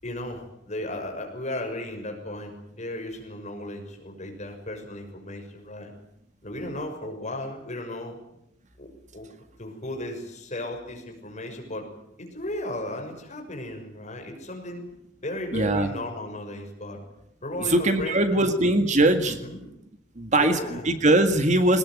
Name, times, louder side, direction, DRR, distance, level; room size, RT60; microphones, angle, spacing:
voice 1, 0.0-5.9 6.4-8.2 8.8-9.3 9.6-11.9 12.2-14.8 15.2-17.0 17.4-18.5 19.3-19.7 20.3-20.9, left 1 dB, 35° left, 3 dB, 6.4 m, -35 dB
voice 2, 15.5-15.9 17.6-19.4 20.2-21.8, right 1 dB, 40° right, 8 dB, 1.9 m, -21 dB
22.5 x 19.5 x 9.6 m, 0.83 s
head